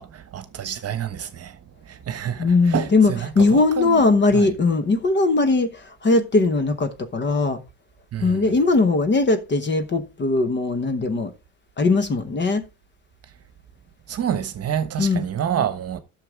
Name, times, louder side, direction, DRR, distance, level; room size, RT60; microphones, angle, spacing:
voice 1, 0.0-4.0 4.3-4.5 8.1-8.5 14.1-16.0, right 9 dB, 40° right, 1.2 m, -28 dB
voice 2, 2.4-7.6 8.2-11.3 11.8-12.6 15.0-15.3, left 3 dB, 30° left, 1.0 m, -20 dB
11.5 x 6.6 x 3.6 m
cardioid pair, 125°, 39 cm